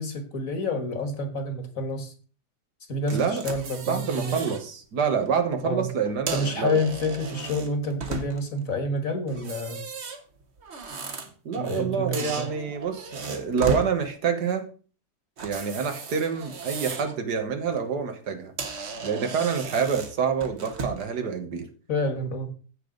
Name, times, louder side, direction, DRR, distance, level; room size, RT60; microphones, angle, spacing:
voice 1, 0.0-2.1 2.9-4.5 5.6-5.9 6.3-9.8 11.5-12.5 21.9-22.5, left 1 dB, 55° left, 7 dB, 1.9 m, -28 dB
sound 1, 3.1-4.6 5.0-5.3 6.0-8.6 9.3-11.8 12.1-13.9 15.4-17.2 17.6-17.8 18.3-18.4 18.6-21.1, right 4 dB, 45° right, 1.3 m, -35 dB
voice 2, 3.1-3.4 3.9-6.8 11.5-14.7 15.4-18.5 19.0-21.7, right 6 dB, 75° right, 7 dB, 1.9 m, -27 dB
15.0 x 5.2 x 3.9 m, 0.39 s
omnidirectional pair, 1.8 m